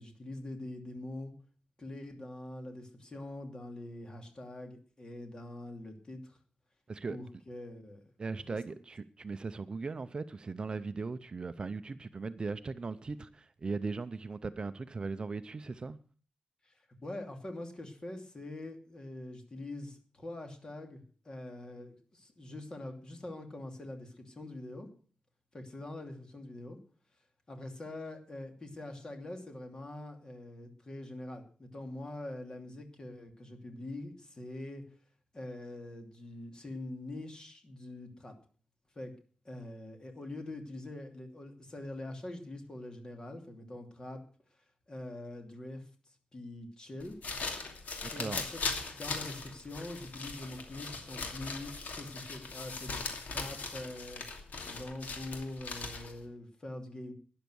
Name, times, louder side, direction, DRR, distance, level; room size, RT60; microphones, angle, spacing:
voice 1, 0.0-1.3 1.8-6.4 7.1-8.0 16.6-16.7 17.0-24.9 25.5-26.8 27.5-34.8 35.3-38.4 38.9-39.1 39.4-44.2 44.9-45.9 46.3-47.2 48.1-48.6 48.9-53.0 53.3-54.2 54.6-57.1, left 1 dB, 30° left, 2.7 m, -44 dB
voice 2, 8.2-16.0 48.0-48.5, right 4 dB, 35° right, 0.5 m, -38 dB
sound 1, 47.0-56.2, left 4 dB, 80° left, 2.6 m, -40 dB
12.5 x 10.5 x 6.2 m
wide cardioid pair, 150°, 3 cm